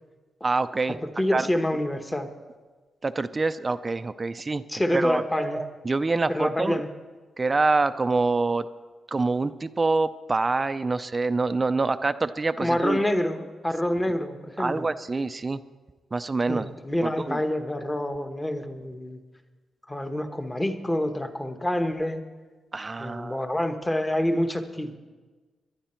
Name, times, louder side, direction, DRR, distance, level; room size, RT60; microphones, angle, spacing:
voice 1, 0.4-1.0 1.3-1.5 3.0-4.6 4.9-6.8 7.4-8.7 9.1-13.0 14.6-15.6 16.1-16.7 17.0-17.4 22.7-23.5, right 3 dB, 25° right, 12 dB, 0.4 m, -26 dB
voice 2, 1.0-2.3 4.7-5.6 6.3-6.9 12.6-14.8 16.5-19.2 19.9-22.2 23.0-25.0, left 1 dB, 15° left, 7 dB, 1.1 m, -27 dB
19.5 x 11.5 x 4.4 m, 1.4 s
cardioid pair, 115°, 0 cm